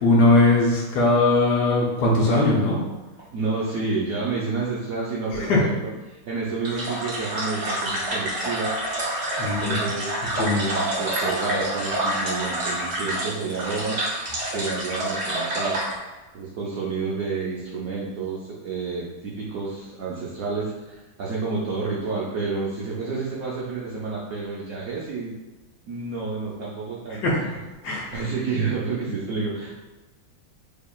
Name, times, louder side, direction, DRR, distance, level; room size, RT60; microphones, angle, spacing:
voice 1, 0.0-2.8 5.4-5.6 9.4-9.8 10.4-10.6 27.1-27.6 27.8-28.2, left 2 dB, 65° left, -2 dB, 1.2 m, -20 dB
voice 2, 3.3-8.8 9.4-10.1 10.4-15.8 16.3-25.4 25.9-27.2 28.1-29.8, right 4 dB, 70° right, -5 dB, 0.8 m, -30 dB
sound 1, 6.6-15.9, right 1 dB, 45° right, 1.4 m, -27 dB
4.9 x 2.8 x 2.3 m, 1.1 s
omnidirectional pair, 2.0 m